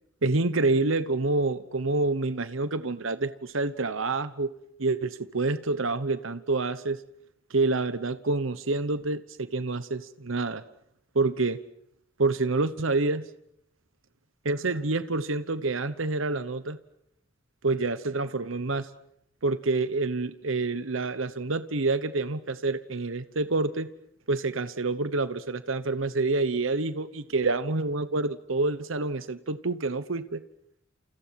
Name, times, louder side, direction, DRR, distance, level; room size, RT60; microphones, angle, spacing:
voice 1, 0.2-4.5 4.8-7.0 7.5-10.6 11.1-11.6 12.2-13.3 14.4-16.8 17.6-18.9 19.4-23.9 24.3-30.4, right 3 dB, 75° right, 13 dB, 1.1 m, -27 dB
30.0 x 28.5 x 5.9 m, 0.73 s
head